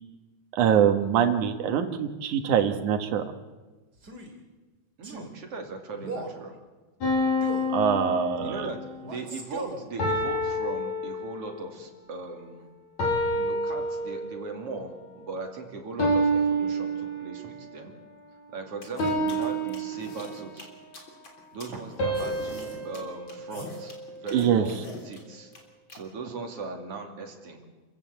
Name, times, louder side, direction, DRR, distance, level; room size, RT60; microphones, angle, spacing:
voice 1, 0.5-3.2 7.7-8.6 24.3-24.6, right 8 dB, 80° right, 7 dB, 2.8 m, -23 dB
Male speech man speaking, 4.0-4.4 5.0-5.3 6.0-6.4 7.4-7.7 9.0-9.9, right 3 dB, 30° right, 3.3 m, -37 dB
voice 2, 5.0-6.6 8.4-12.7 13.2-17.9 18.5-20.7 21.5-25.5 25.9-27.7, right 3 dB, 50° right, 3 dB, 3.5 m, -39 dB
sound 1, 7.0-8.9 10.0-11.6 13.0-14.6 16.0-17.7 19.0-20.6 22.0-24.3, equal, 60° left, 6.0 m, -29 dB
sound 2, 18.8-26.0, left 2 dB, 40° left, 4.0 m, -43 dB
27.5 x 15.5 x 8.2 m, 1.3 s
omnidirectional pair, 3.5 m